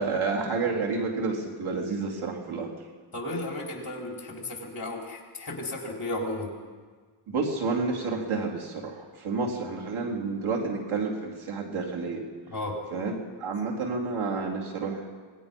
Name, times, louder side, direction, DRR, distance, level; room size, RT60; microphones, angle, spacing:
voice 1, 0.0-2.7 7.3-12.2 12.9-15.1, right 4 dB, 80° right, -1 dB, 4.2 m, -30 dB
voice 2, 3.1-6.6 12.5-12.8, left 1 dB, 45° left, 0 dB, 4.8 m, -34 dB
26.5 x 19.5 x 5.6 m, 1.5 s
wide cardioid pair, 105°, 48 cm